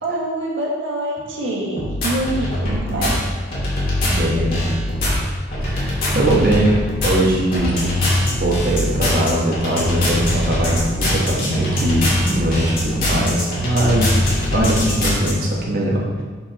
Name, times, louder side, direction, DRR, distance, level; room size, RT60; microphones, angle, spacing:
voice 1, 0.0-3.2 9.7-9.9 10.2-10.4, right 1 dB, 80° right, -4 dB, 1.9 m, -25 dB
sound 1, 1.8-15.3, left 1 dB, 45° left, 2.1 m, -21 dB
voice 2, 4.0-4.6 5.6-7.8 8.3-14.2 14.5-16.2, right 1 dB, 50° right, -3 dB, 1.3 m, -21 dB
7.5 x 7.3 x 3.0 m, 1.4 s
head